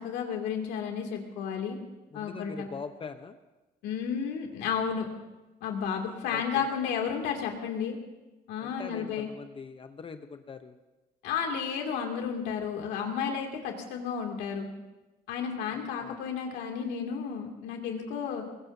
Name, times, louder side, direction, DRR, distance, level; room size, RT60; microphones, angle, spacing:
voice 1, 0.0-1.8 2.1-2.7 3.8-5.1 5.6-8.0 8.5-9.3 11.2-14.7 15.3-18.4, left 7 dB, 90° left, 2 dB, 2.5 m, -32 dB
voice 2, 2.1-3.4 6.3-6.7 8.6-10.8 16.0-16.2, left 5 dB, 30° left, 8 dB, 0.8 m, -42 dB
22.0 x 20.0 x 2.7 m, 1.1 s
cardioid pair, 110°, 17 cm